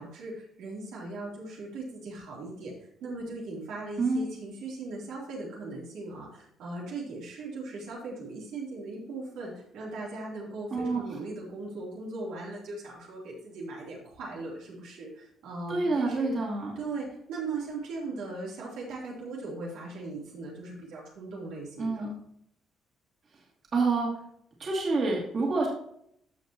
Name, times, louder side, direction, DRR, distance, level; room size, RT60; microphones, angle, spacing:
voice 1, 0.0-16.3 16.7-22.1, right 3 dB, 85° right, -4 dB, 3.3 m, -39 dB
voice 2, 10.7-11.0 15.7-16.8 21.8-22.1 23.7-24.1 24.6-25.7, right 3 dB, 45° right, -3 dB, 2.7 m, -27 dB
14.5 x 5.4 x 3.0 m, 0.70 s
cardioid pair, 105°, 0 cm